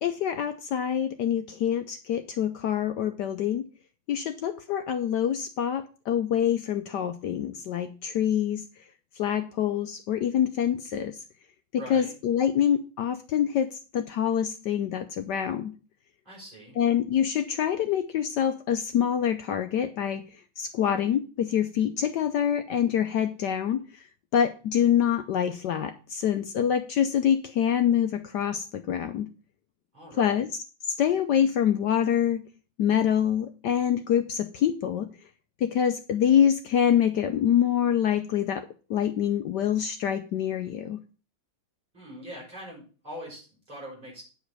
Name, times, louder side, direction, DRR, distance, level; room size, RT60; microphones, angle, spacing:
voice 1, 0.0-3.7 4.1-8.8 9.1-11.2 11.7-15.7 16.8-24.1 24.3-29.3 30.1-30.6 31.0-32.4 32.8-35.1 35.6-41.0, left 9 dB, 70° left, 9 dB, 1.0 m, -26 dB
voice 2, 11.7-12.1 16.2-16.8 29.9-30.4 41.9-44.2, equal, 20° right, -4 dB, 6.4 m, -42 dB
8.9 x 5.1 x 6.5 m, 0.35 s
omnidirectional pair, 2.3 m